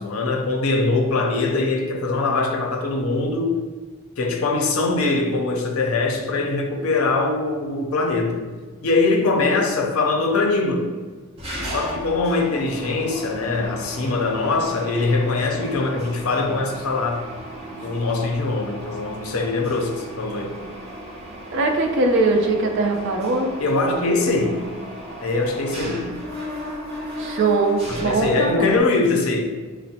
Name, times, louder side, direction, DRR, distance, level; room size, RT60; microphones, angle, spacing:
voice 1, 0.0-3.6 4.2-8.5 8.8-10.9 11.7-17.2 17.7-20.6 23.6-24.7 25.2-26.1 27.9-29.4, left 3 dB, 75° left, 4 dB, 0.5 m, -22 dB
Mechanisms, 11.4-28.8, equal, 25° right, 1.0 m, -36 dB
voice 2, 21.5-23.5 27.2-28.8, right 3 dB, 55° right, 2 dB, 0.5 m, -21 dB
5.9 x 2.0 x 2.7 m, 1.4 s
head